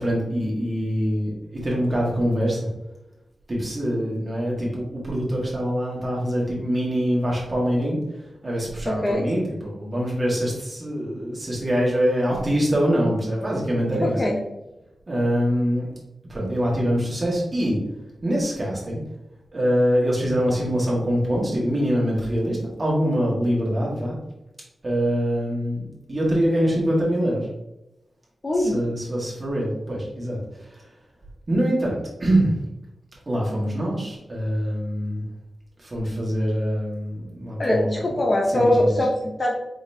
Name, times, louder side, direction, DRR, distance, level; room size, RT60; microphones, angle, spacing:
voice 1, 0.0-2.6 3.5-8.0 8.4-14.2 15.1-15.9 16.3-17.8 18.2-19.0 19.5-24.2 24.8-25.8 26.1-27.5 28.6-30.8 31.5-32.5 33.3-35.2 35.8-38.0 38.5-39.0, equal, 25° right, -4 dB, 1.6 m, -24 dB
voice 2, 8.9-9.2 14.0-14.4 28.4-28.8 37.6-39.6, left 1 dB, 30° left, 0 dB, 0.6 m, -22 dB
5.0 x 4.0 x 2.7 m, 0.95 s
wide cardioid pair, 165°, 0 cm